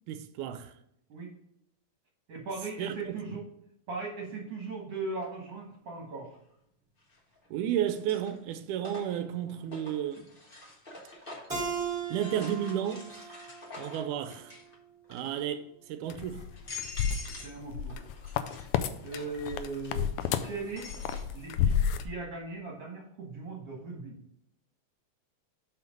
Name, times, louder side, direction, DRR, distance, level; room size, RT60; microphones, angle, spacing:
voice 1, 0.1-0.7 2.8-3.2 7.5-10.3 12.1-13.4 13.8-14.5 15.1-16.4, right 10 dB, 85° right, 2.1 m, -33 dB
voice 2, 2.3-3.4 3.9-6.4 17.4-18.0 19.0-20.1 20.4-20.9 21.3-21.7 22.0-24.2, right 3 dB, 55° right, 2.2 m, -38 dB
sound 1, 5.2-5.3 7.0-7.5 7.9-11.6 12.1-14.7 15.0-15.5 16.1-16.2 16.5-17.6 17.9-21.2, left 3 dB, 40° left, 0.7 m, -46 dB
Keyboard (musical), 11.5-14.7, right 5 dB, 15° right, 2.2 m, -38 dB
sound 2, 16.1-18.9 19.1-22.0, left 8 dB, 85° left, 2.1 m, -30 dB
5.7 x 5.7 x 5.1 m
omnidirectional pair, 3.6 m